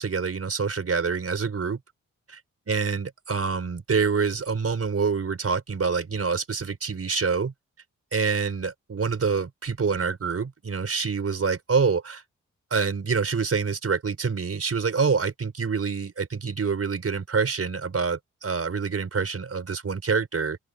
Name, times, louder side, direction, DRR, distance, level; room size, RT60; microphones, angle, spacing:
voice 1, 0.0-1.8 2.7-7.5 8.1-12.2 12.7-20.6, right 5 dB, 50° right, 4.8 m, -26 dB
open air
cardioid pair, 55°, 30 cm